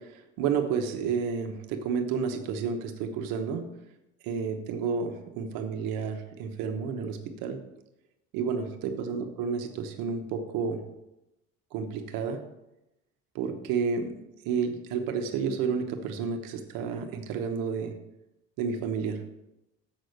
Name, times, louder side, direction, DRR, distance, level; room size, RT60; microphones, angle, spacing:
voice 1, 0.0-3.7 4.2-7.6 8.3-10.8 11.7-12.4 13.3-14.2 14.4-17.9 18.6-19.2, right 6 dB, 80° right, 6 dB, 1.1 m, -31 dB
7.5 x 6.3 x 6.5 m, 0.92 s
cardioid pair, 125°, 33 cm